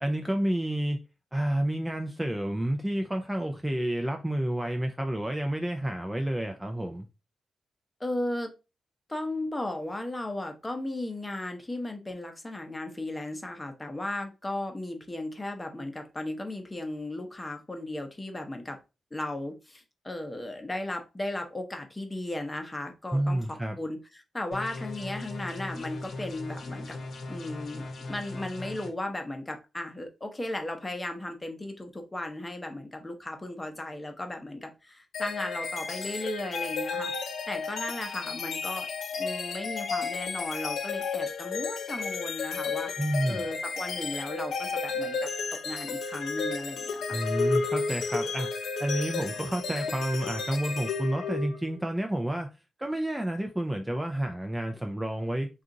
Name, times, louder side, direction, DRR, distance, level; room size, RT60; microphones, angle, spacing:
voice 1, 0.0-1.0 1.3-7.1 23.1-23.8 43.0-43.4 47.1-48.5 48.8-52.5 52.8-55.6, right 1 dB, 10° right, 0.4 m, -30 dB
voice 2, 8.0-8.5 9.1-18.8 19.1-27.0 27.3-37.1 37.5-38.9 39.2-42.9 43.3-47.2, left 1 dB, 15° left, 0.7 m, -36 dB
sound 1, 24.5-28.9, left 2 dB, 65° left, 0.9 m, -39 dB
sound 2, 35.1-51.8, left 4 dB, 80° left, 0.4 m, -33 dB
2.8 x 2.4 x 3.7 m
wide cardioid pair, 110°, 0 cm